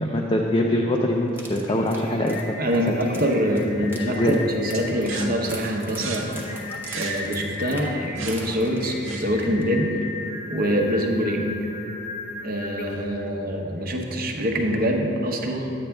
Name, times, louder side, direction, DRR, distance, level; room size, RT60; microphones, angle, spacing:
voice 1, 0.0-2.8 3.2-3.3 3.9-4.4, left 1 dB, 25° left, -1 dB, 0.5 m, -24 dB
sound 1, 1.3-9.1 9.4-9.6 10.0-10.1, right 2 dB, 10° right, 1.0 m, -43 dB
Singing, 1.4-13.2, left 3 dB, 45° left, 1.0 m, -37 dB
voice 2, 2.6-6.4 6.9-9.9 10.5-11.5 12.4-15.7, equal, 45° right, 2 dB, 0.9 m, -25 dB
sound 2, 4.7-9.6, right 4 dB, 75° right, 0.9 m, -38 dB
10.0 x 8.5 x 3.5 m, 2.8 s
head